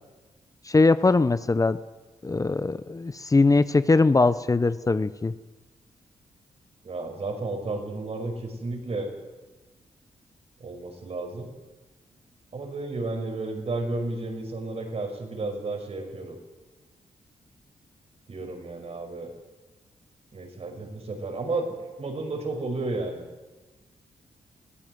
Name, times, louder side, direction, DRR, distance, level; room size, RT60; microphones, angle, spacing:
voice 1, 0.6-1.8 2.2-5.3, left 3 dB, 25° left, 14 dB, 0.9 m, -21 dB
voice 2, 6.8-9.1 10.6-11.5 12.5-16.4 18.3-19.3 20.3-21.6 22.0-23.3, right 2 dB, 55° right, 4 dB, 5.7 m, -32 dB
22.5 x 15.5 x 9.5 m, 1.2 s
cardioid pair, 65°, 13 cm